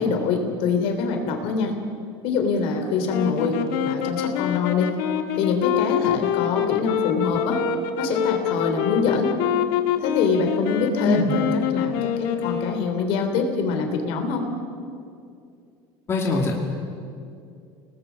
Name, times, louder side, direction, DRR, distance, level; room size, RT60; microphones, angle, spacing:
voice 1, 0.0-1.7 2.2-3.6 3.8-4.9 5.4-7.6 8.0-9.3 10.0-14.5, left 4 dB, 60° left, 5 dB, 3.4 m, -24 dB
sound 1, 3.1-13.1, left 10 dB, 80° left, 1.6 m, -26 dB
voice 2, 16.1-16.5, left 3 dB, 25° left, -1 dB, 2.5 m, -22 dB
29.0 x 19.5 x 6.3 m, 2.4 s
cardioid pair, 150°, 11 cm